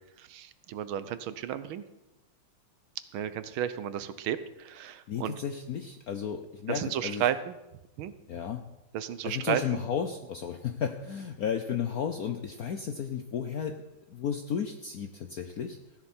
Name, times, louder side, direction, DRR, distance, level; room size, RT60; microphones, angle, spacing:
voice 1, 0.2-1.8 3.1-5.4 6.7-7.5 8.0-8.1 8.9-9.8, right 10 dB, 75° right, 13 dB, 1.5 m, -33 dB
voice 2, 5.1-7.3 8.3-8.6 9.2-13.8 14.1-15.8, left 7 dB, 70° left, 7 dB, 0.9 m, -33 dB
16.0 x 10.5 x 4.3 m, 0.96 s
omnidirectional pair, 2.4 m